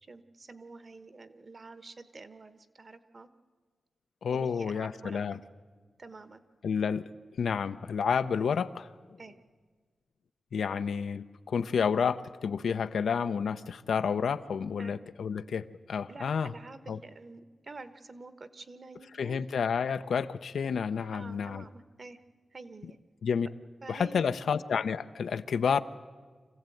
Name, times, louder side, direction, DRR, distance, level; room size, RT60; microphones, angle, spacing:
voice 1, 0.0-3.3 4.3-5.2 6.0-6.4 9.2-9.3 14.8-15.0 16.1-19.4 21.1-22.2 22.5-23.0 23.8-24.2, right 3 dB, 35° right, 12 dB, 1.1 m, -48 dB
voice 2, 4.2-5.4 6.6-7.0 7.4-8.9 10.5-16.5 16.9-17.0 19.2-21.6 23.2-23.5 23.9-25.8, left 6 dB, 80° left, 11 dB, 0.7 m, -30 dB
26.0 x 15.5 x 9.2 m, 1.5 s
wide cardioid pair, 160°, 0 cm